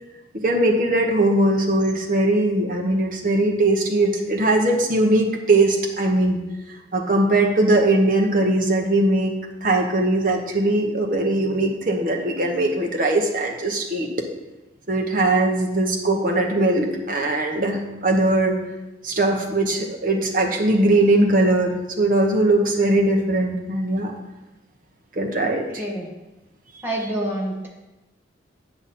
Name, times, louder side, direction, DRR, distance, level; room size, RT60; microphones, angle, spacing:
voice 1, 0.4-6.4 6.9-9.3 9.6-14.1 14.9-18.6 19.0-24.1 25.2-25.8, right 2 dB, 45° right, 1 dB, 1.0 m, -20 dB
voice 2, 25.8-26.1 26.8-27.7, right 1 dB, 10° right, -3 dB, 1.3 m, -27 dB
8.5 x 6.0 x 4.2 m, 1.0 s
head